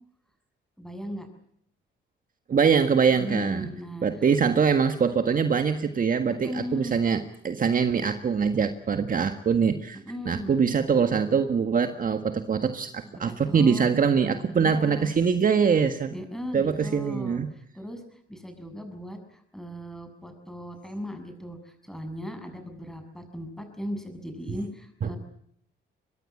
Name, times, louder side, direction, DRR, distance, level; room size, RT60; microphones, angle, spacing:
voice 1, 0.8-1.3 3.1-4.1 4.4-4.5 6.3-7.0 10.1-10.6 13.3-13.9 14.5-15.1 16.1-18.0 18.3-25.2, equal, ahead, 6 dB, 7.1 m, -37 dB
voice 2, 2.5-3.7 4.0-10.0 10.2-16.1 16.5-17.5 25.0-25.1, right 6 dB, 45° right, 7 dB, 1.7 m, -23 dB
24.0 x 21.5 x 8.6 m, 0.67 s
cardioid pair, 90°, 20 cm